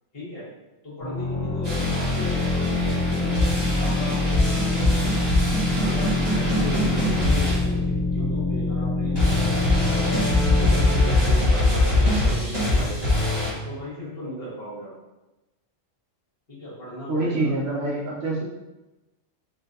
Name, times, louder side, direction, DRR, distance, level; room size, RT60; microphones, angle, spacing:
voice 1, 0.1-0.5 0.8-4.2 4.7-5.2 5.8-10.1 10.5-13.0 13.6-14.9 16.5-17.5, equal, 50° left, -8 dB, 1.8 m, -36 dB
sound 1, 1.0-12.5, left 2 dB, 25° left, 1.1 m, -26 dB
sound 2, 1.6-8.3 9.2-13.5, left 1 dB, 20° right, 1.1 m, -23 dB
voice 2, 17.1-18.4, right 2 dB, 60° right, -3 dB, 0.8 m, -25 dB
3.8 x 3.3 x 2.7 m, 1.0 s
omnidirectional pair, 1.3 m